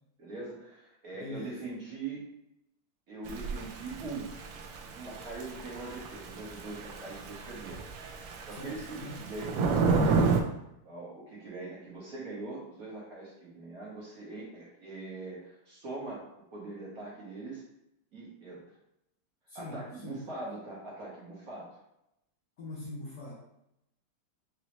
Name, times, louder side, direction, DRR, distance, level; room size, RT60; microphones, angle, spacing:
voice 1, 0.2-2.2 3.1-4.3 4.9-7.8 8.2-10.3 10.8-17.6 18.1-18.6 19.5-21.7, right 3 dB, 50° right, -5 dB, 1.3 m, -42 dB
voice 2, 1.1-1.6 8.5-9.2 19.5-20.2 22.6-23.3, left 2 dB, 60° left, -4 dB, 1.1 m, -42 dB
Thunder / Rain, 3.3-10.4, right 4 dB, 90° right, 0.8 m, -31 dB
5.1 x 2.7 x 3.0 m, 0.83 s
omnidirectional pair, 2.3 m